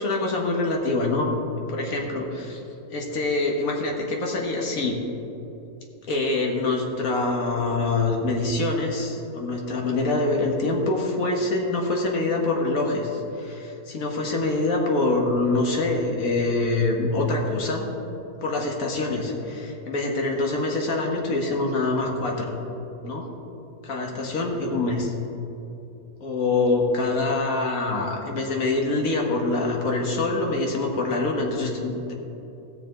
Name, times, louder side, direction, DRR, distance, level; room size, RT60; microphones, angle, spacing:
voice 1, 0.0-1.3 1.7-2.6 2.9-5.0 6.1-17.9 18.4-22.5 23.0-23.3 23.8-25.1 26.2-32.1, left 2 dB, 55° left, 0 dB, 1.7 m, -25 dB
16.0 x 6.9 x 3.8 m, 3.0 s
omnidirectional pair, 1.8 m